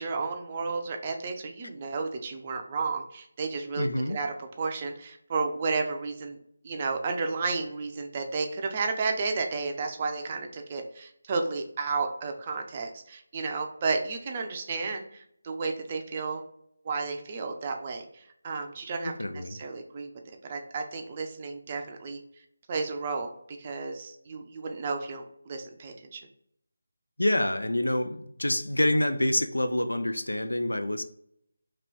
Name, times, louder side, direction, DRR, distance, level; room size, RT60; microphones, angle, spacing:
voice 1, 0.0-6.4 6.6-16.4 16.8-22.2 22.7-26.3, right 4 dB, 30° right, 0.5 m, -32 dB
voice 2, 3.8-4.2 19.0-19.6 27.2-31.0, left 1 dB, 85° left, 0.4 m, -27 dB
3.0 x 2.9 x 4.0 m
figure-of-eight pair, 160°, 0 cm